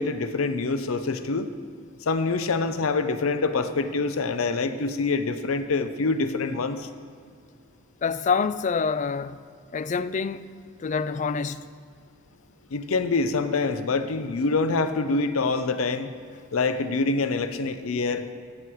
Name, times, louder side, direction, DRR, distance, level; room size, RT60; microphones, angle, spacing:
voice 1, 0.0-1.5 2.1-6.9 12.7-16.1 16.5-18.2, left 3 dB, 90° left, 0.6 m, -25 dB
voice 2, 8.0-9.4 9.7-10.5 10.8-11.6, left 5 dB, 35° left, 0.3 m, -26 dB
14.5 x 8.0 x 4.6 m
head